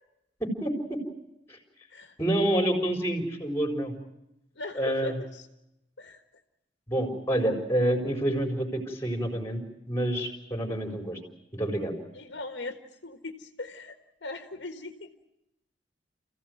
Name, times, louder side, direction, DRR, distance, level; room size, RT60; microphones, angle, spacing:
voice 1, 0.4-1.0 1.5-1.6 2.2-3.9 4.7-5.1 6.9-9.6 9.9-11.2 11.5-11.9, right 1 dB, 15° left, 5 dB, 4.3 m, -28 dB
voice 2, 4.5-5.5 6.0-6.2 12.1-13.9 14.2-15.1, left 2 dB, 65° left, 6 dB, 1.6 m, -39 dB
28.0 x 16.0 x 9.4 m, 0.89 s
head